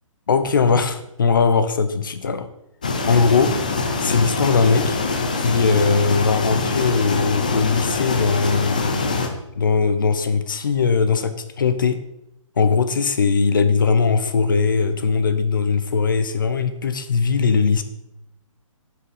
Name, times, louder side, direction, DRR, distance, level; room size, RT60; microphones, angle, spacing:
voice 1, 0.3-2.5 3.0-3.5 4.0-5.0 5.4-12.0 12.6-17.8, left 5 dB, 40° left, 10 dB, 0.7 m, -20 dB
sound 1, 2.8-9.3, left 3 dB, 15° left, 0.4 m, -24 dB
9.4 x 5.8 x 4.9 m, 0.83 s
hypercardioid pair, 175°, 17 cm